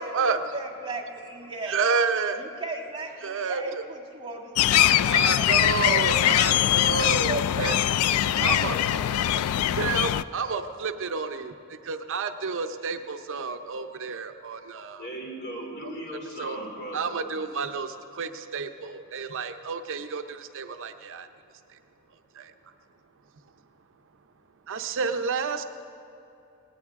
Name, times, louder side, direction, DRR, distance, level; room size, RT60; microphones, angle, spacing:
voice 1, 0.0-1.8 2.4-6.5 7.0-9.5, right 2 dB, 20° right, -1 dB, 1.5 m, -37 dB
voice 2, 1.7-2.4 3.2-3.8 5.1-7.7 8.4-8.8 9.8-15.1 16.4-16.6 16.9-21.3 22.3-22.5 24.7-25.6, right 5 dB, 60° right, 8 dB, 0.7 m, -30 dB
sound 1, 4.6-10.2, left 12 dB, 70° left, 0.3 m, -22 dB
voice 3, 15.0-17.1, right 1 dB, 50° left, -1 dB, 3.1 m, -37 dB
18.5 x 17.0 x 3.6 m, 2.7 s
head